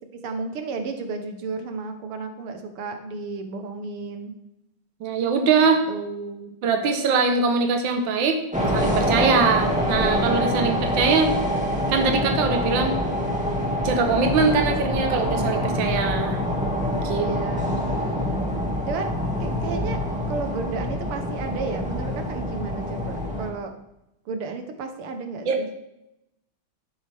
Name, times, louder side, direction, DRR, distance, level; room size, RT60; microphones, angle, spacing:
voice 1, 0.1-4.3 5.9-6.5 17.2-17.8 18.9-19.1 19.4-20.0 20.3-23.7 24.3-25.7, right 4 dB, 85° right, 6 dB, 2.1 m, -33 dB
voice 2, 5.0-5.8 6.6-8.4 8.7-11.3 11.9-13.0 13.8-16.4 17.0-17.3 25.5-25.6, right 5 dB, 65° right, 5 dB, 1.9 m, -22 dB
sound 1, 8.5-23.5, equal, 5° right, 2.0 m, -25 dB
11.5 x 11.5 x 3.5 m, 0.86 s
omnidirectional pair, 2.3 m